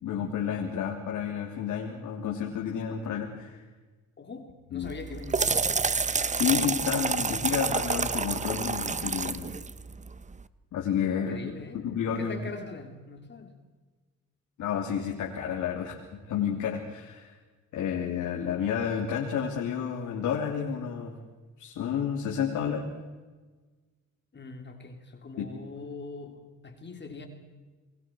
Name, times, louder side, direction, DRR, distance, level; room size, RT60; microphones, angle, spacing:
voice 1, 0.0-3.6 4.7-4.9 6.3-9.5 10.7-11.4 11.7-12.4 14.6-17.4 17.7-21.1 21.6-22.9 25.4-25.5, left 8 dB, 80° left, -1 dB, 3.1 m, -30 dB
voice 2, 4.2-5.7 11.2-11.9 12.1-13.6 24.3-27.3, left 3 dB, 35° left, 4 dB, 3.1 m, -42 dB
sound 1, 4.8-10.4, right 5 dB, 25° right, 0.9 m, -29 dB
28.0 x 21.5 x 4.6 m, 1.3 s
cardioid pair, 90°, 30 cm